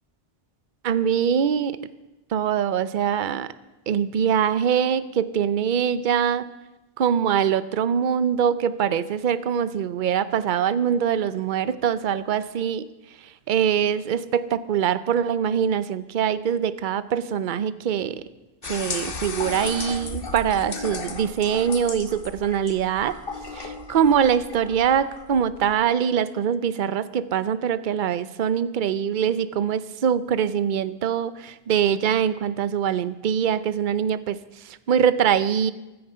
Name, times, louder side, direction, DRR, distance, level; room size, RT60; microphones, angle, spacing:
voice 1, 0.8-1.8 2.3-3.5 3.9-6.5 7.0-12.8 13.5-18.2 18.6-23.2 23.5-34.4 34.6-35.7, right 8 dB, 55° right, 15 dB, 0.8 m, -23 dB
sound 1, 18.6-25.8, left 4 dB, 60° left, 1.4 m, -35 dB
15.5 x 13.5 x 5.6 m, 1.0 s
omnidirectional pair, 1.1 m